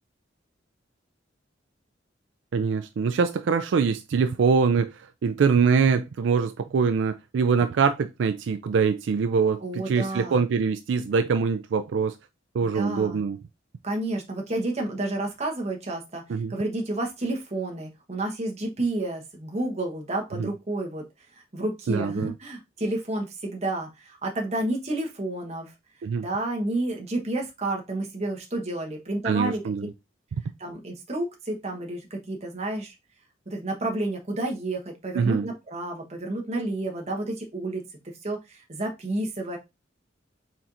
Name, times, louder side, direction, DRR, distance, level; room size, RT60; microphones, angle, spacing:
voice 1, 2.5-4.9 5.2-12.2 12.5-13.4 16.3-16.5 20.4-20.5 21.9-22.3 26.0-26.3 29.2-29.9 30.3-30.4 35.2-35.5, right 5 dB, 75° right, 0.4 m, -23 dB
voice 2, 9.6-10.4 12.6-13.2 13.8-16.2 16.5-21.1 21.5-25.7 26.2-29.6 30.6-32.9 33.5-37.8 38.2-39.6, right 2 dB, 35° right, 1.1 m, -30 dB
4.3 x 4.2 x 2.5 m
head